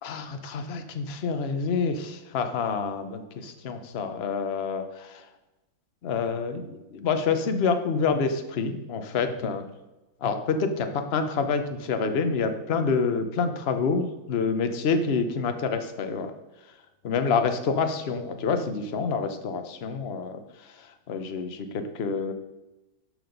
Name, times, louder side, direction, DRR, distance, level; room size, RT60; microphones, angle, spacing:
voice 1, 0.0-5.3 6.0-9.6 10.2-16.3 17.0-22.3, left 5 dB, 50° left, 8 dB, 0.7 m, -27 dB
12.5 x 4.9 x 5.2 m, 1.0 s
omnidirectional pair, 2.1 m